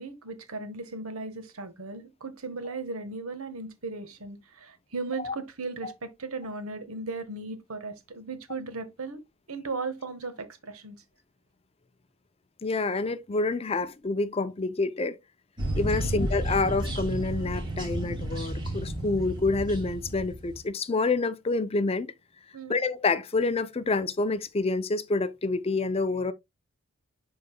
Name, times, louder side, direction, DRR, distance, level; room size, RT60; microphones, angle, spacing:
voice 1, 0.0-9.2 9.5-11.0 15.9-16.2 22.5-22.8, right 3 dB, 85° right, 1.4 m, -37 dB
voice 2, 12.6-15.2 15.7-22.1 22.7-26.3, left 3 dB, 25° left, 0.5 m, -28 dB
sound 1, 15.6-20.6, right 1 dB, 20° right, 2.5 m, -32 dB
11.5 x 3.9 x 2.2 m
head